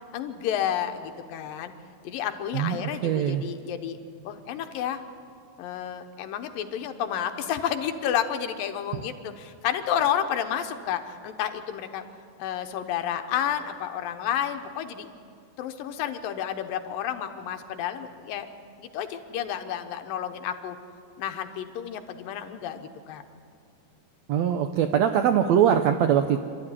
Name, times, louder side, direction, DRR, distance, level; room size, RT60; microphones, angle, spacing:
voice 1, 0.1-1.7 2.0-5.0 5.6-12.1 12.4-15.1 15.6-18.5 18.8-20.8 21.2-23.2, left 9 dB, 90° left, 7 dB, 2.8 m, -31 dB
voice 2, 2.5-3.4 24.3-26.4, right 9 dB, 80° right, 7 dB, 1.5 m, -22 dB
26.5 x 13.0 x 9.9 m, 2.4 s
omnidirectional pair, 4.0 m